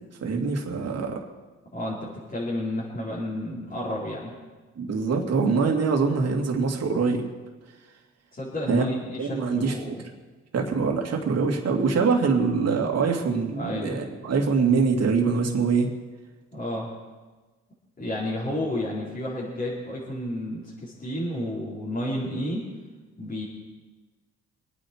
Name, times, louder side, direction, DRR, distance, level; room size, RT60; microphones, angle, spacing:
voice 1, 0.2-1.2 4.8-7.2 8.7-8.8 9.2-9.8 10.5-15.9, right 5 dB, 55° right, 2 dB, 2.6 m, -24 dB
voice 2, 1.7-4.3 8.3-10.1 13.6-14.0 16.5-16.9 18.0-22.6 23.2-23.5, left 1 dB, 30° left, -9 dB, 4.5 m, -31 dB
25.0 x 9.5 x 4.7 m, 1.3 s
cardioid pair, 90°, 30 cm